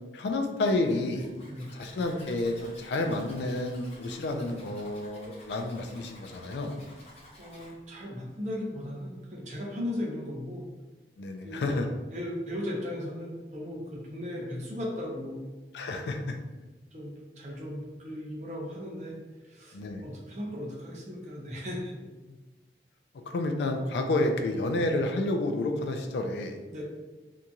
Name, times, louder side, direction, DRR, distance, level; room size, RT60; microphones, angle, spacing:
voice 1, 0.1-1.3 1.7-6.8 11.2-11.9 15.7-16.4 19.7-20.1 22.3-22.4 23.3-26.6, left 2 dB, 75° left, 5 dB, 0.3 m, -30 dB
Zipper (clothing), 0.6-7.7, left 1 dB, 35° left, 0.6 m, -52 dB
voice 2, 7.4-10.7 11.4-11.8 12.1-15.4 16.9-21.9 26.7-26.8, left 1 dB, 40° right, -2 dB, 0.6 m, -37 dB
2.8 x 2.5 x 2.3 m, 1.2 s
head